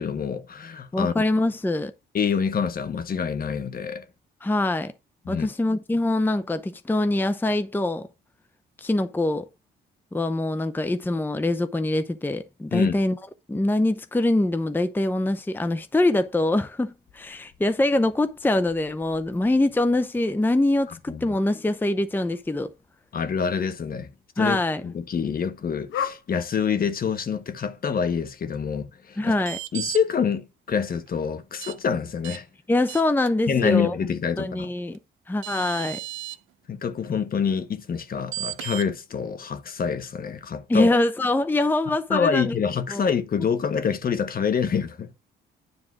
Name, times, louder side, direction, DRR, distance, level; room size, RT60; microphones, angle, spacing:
voice 1, 0.0-1.1 2.1-4.0 5.2-5.5 12.7-13.0 21.1-21.3 23.1-24.1 24.4-29.3 29.7-32.5 33.5-34.7 36.7-40.9 42.1-45.1, left 6 dB, 50° left, 1.2 m, -26 dB
voice 2, 0.9-1.9 4.4-4.9 5.3-8.1 8.8-9.5 10.1-13.2 13.5-22.7 24.4-24.8 29.2-29.6 32.7-33.9 34.4-35.0 35.3-36.0 40.7-42.6 42.9-43.0, left 2 dB, 10° left, 0.7 m, -24 dB
sound 1, 16.2-28.5, left 8 dB, 80° left, 1.0 m, -43 dB
sound 2, 29.4-30.0 31.6-31.7 32.2-32.4 32.9-33.3 34.9-35.0 35.4-36.4 38.3-38.9, right 15 dB, 80° right, 0.7 m, -34 dB
9.7 x 3.7 x 6.0 m
cardioid pair, 90°, 20 cm